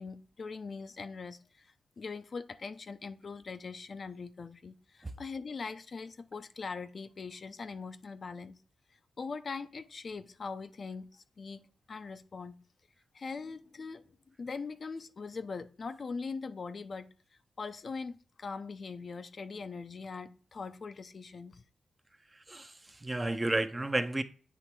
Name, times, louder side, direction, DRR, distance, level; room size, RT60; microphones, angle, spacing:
voice 1, 0.0-8.6 9.2-12.6 13.1-14.1 14.4-17.1 17.6-21.6, left 4 dB, 55° left, 0.6 m, -41 dB
voice 2, 22.3-24.2, right 2 dB, 25° right, 0.8 m, -32 dB
8.3 x 3.3 x 4.6 m
cardioid pair, 55°, 0 cm